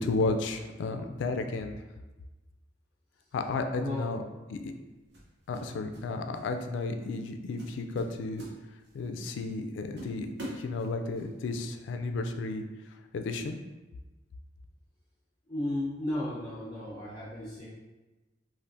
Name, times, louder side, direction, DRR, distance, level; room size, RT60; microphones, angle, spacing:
voice 1, 0.0-1.8 3.3-4.2 4.5-4.7 5.5-8.4 8.9-10.3 10.6-12.6 13.1-13.6, left 3 dB, 85° left, 6 dB, 0.3 m, -32 dB
voice 2, 3.8-4.1 15.5-17.7, left 1 dB, 25° left, -9 dB, 0.6 m, -34 dB
sound 1, 3.8-4.0 5.1-6.1 6.3-6.6 7.1-7.3 7.6-9.1 9.5-9.6 10.0-11.3, right 1 dB, 70° right, 0.8 m, -44 dB
3.3 x 2.5 x 2.5 m, 1.1 s
head